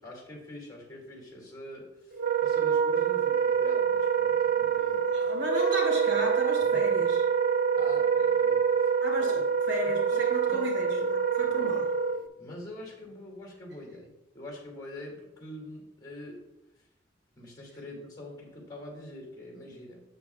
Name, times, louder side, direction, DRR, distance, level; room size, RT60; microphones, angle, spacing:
voice 1, 0.0-5.3 7.7-8.9 9.2-9.4 9.8-10.6 11.4-11.8 12.1-16.4 17.4-20.0, left 1 dB, 20° left, -1 dB, 2.4 m, -45 dB
Wind instrument woodwind instrument, 2.1-12.2, right 7 dB, 45° right, 0.4 m, -26 dB
voice 2, 5.1-7.2 9.0-9.3 9.7-11.8, equal, 75° right, 0 dB, 2.3 m, -34 dB
8.2 x 8.1 x 2.4 m, 0.94 s
head